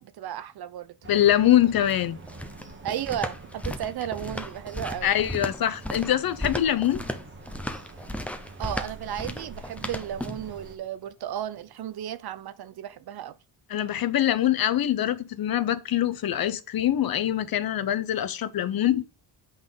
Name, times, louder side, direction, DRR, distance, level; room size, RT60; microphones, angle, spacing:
voice 1, 0.0-1.0 2.8-5.1 8.6-13.3, right 11 dB, 55° right, 0.7 m, -34 dB
sound 1, 1.0-10.8, right 3 dB, 25° right, 1.3 m, -46 dB
voice 2, 1.1-2.2 5.0-7.0 13.7-19.1, left 11 dB, 50° left, 0.7 m, -24 dB
sound 2, 1.6-10.5, left 1 dB, 5° left, 0.6 m, -35 dB
8.1 x 5.5 x 3.9 m
cardioid pair, 145°, 45 cm